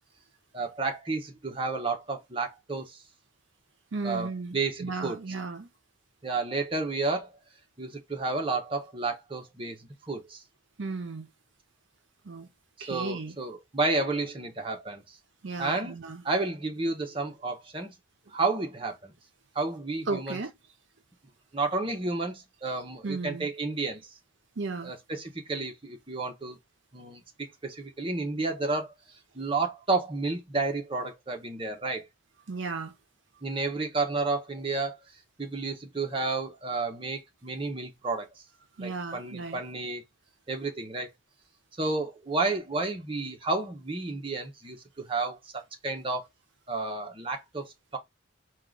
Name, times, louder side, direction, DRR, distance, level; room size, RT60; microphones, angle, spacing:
voice 1, 0.5-3.0 4.0-5.2 6.2-7.3 7.8-9.8 10.1-10.4 12.9-15.0 15.6-15.9 16.2-17.9 18.3-19.1 19.5-20.4 21.5-24.0 24.8-26.6 26.9-28.9 29.4-32.1 33.4-35.0 35.4-38.3 38.8-40.0 40.5-41.1 41.8-44.8 45.1-46.2 46.7-48.0, right 3 dB, 25° right, 0.8 m, -31 dB
voice 2, 3.9-5.7 10.8-11.3 12.2-12.5 12.8-13.4 15.4-16.2 20.1-20.5 23.0-23.5 24.6-24.9 32.5-32.9 38.8-39.6, right 3 dB, 65° right, 0.6 m, -35 dB
4.7 x 2.4 x 3.7 m
head